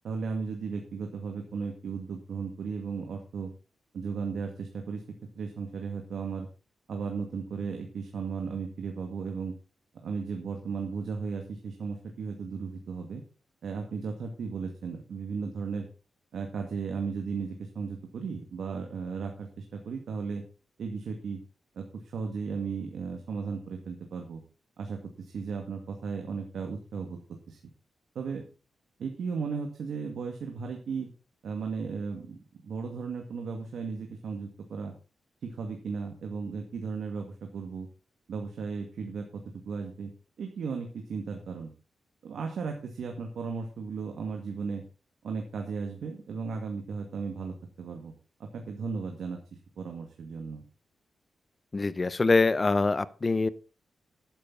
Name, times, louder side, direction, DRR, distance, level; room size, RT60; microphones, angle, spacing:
voice 1, 0.0-3.5 3.9-5.0 5.4-6.5 6.9-9.5 10.0-13.2 13.6-15.9 16.3-20.4 20.8-21.4 21.8-24.4 24.8-27.2 27.5-27.6 28.2-28.5 29.0-31.1 31.4-32.4 32.6-34.9 35.4-37.9 38.3-40.1 40.4-41.7 42.2-44.8 45.2-48.1 48.4-49.4 49.8-50.6, right 5 dB, 75° right, 3 dB, 2.0 m, -35 dB
voice 2, 51.7-53.5, left 3 dB, 30° left, 17 dB, 0.7 m, -24 dB
12.0 x 10.0 x 4.0 m, 0.34 s
wide cardioid pair, 120°, 0 cm